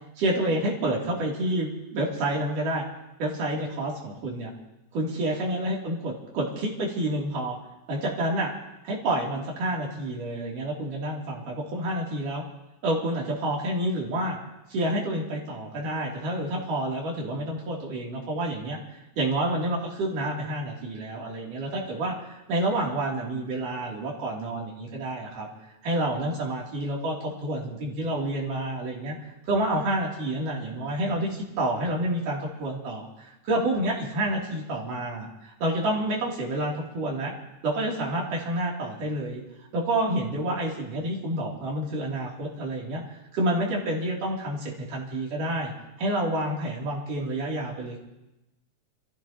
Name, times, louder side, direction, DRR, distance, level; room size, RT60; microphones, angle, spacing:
voice 1, 0.2-2.8 3.2-4.5 4.9-7.6 7.9-8.5 8.8-12.4 12.8-14.4 14.7-18.8 19.2-25.5 25.8-29.1 29.5-37.3 37.6-39.4 39.7-45.7 46.0-48.0, right 1 dB, 80° right, -3 dB, 4.7 m, -29 dB
28.5 x 15.0 x 3.0 m, 0.95 s
omnidirectional pair, 3.7 m